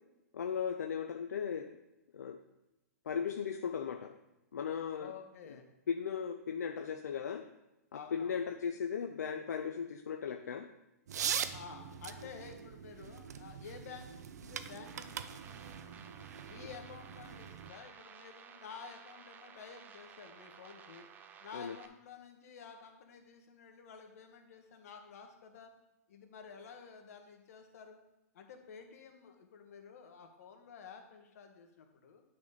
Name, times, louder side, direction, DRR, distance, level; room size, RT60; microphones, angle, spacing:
voice 1, 0.3-1.8 2.1-2.4 3.1-4.2 4.5-5.1 5.9-7.5 7.9-10.7 21.5-21.8, left 7 dB, 80° left, 6 dB, 0.6 m, -37 dB
voice 2, 5.0-5.7 7.9-8.4 11.5-15.7 16.4-21.1 21.4-25.7 26.1-28.0 28.3-32.2, left 6 dB, 60° left, 4 dB, 1.5 m, -51 dB
sound 1, 11.1-17.7, right 8 dB, 75° right, 0.6 m, -42 dB
sound 2, 14.9-21.9, right 7 dB, 20° right, 0.6 m, -55 dB
9.4 x 4.3 x 5.1 m, 0.97 s
hypercardioid pair, 125°, 9 cm